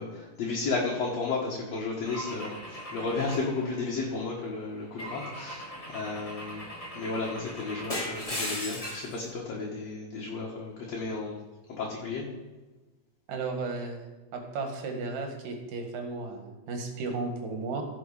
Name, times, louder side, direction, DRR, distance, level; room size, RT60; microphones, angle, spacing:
voice 1, 0.0-6.6 6.9-11.4 11.8-12.2, left 3 dB, 55° left, -3 dB, 2.5 m, -33 dB
Car / Engine / Glass, 2.1-4.3 5.0-9.2, equal, 10° left, 1.8 m, -38 dB
voice 2, 13.3-14.0 14.3-17.8, right 3 dB, 75° right, 3 dB, 3.3 m, -34 dB
16.5 x 6.2 x 4.9 m, 1.2 s
omnidirectional pair, 3.9 m